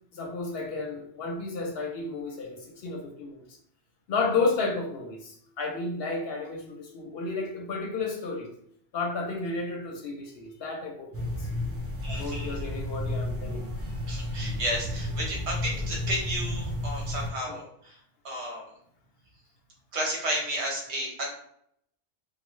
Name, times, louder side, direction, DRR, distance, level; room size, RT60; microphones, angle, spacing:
voice 1, 0.1-3.4 4.1-8.5 8.9-11.5 12.1-13.7 17.5-17.6, left 3 dB, 65° left, 1 dB, 0.7 m, -32 dB
sound 1, 11.1-17.3, left 1 dB, 20° right, 0.4 m, -32 dB
voice 2, 12.0-12.5 14.1-18.0 18.2-18.6 19.9-21.2, right 1 dB, 65° right, -1 dB, 1.2 m, -32 dB
3.2 x 2.1 x 3.1 m, 0.69 s
omnidirectional pair, 1.2 m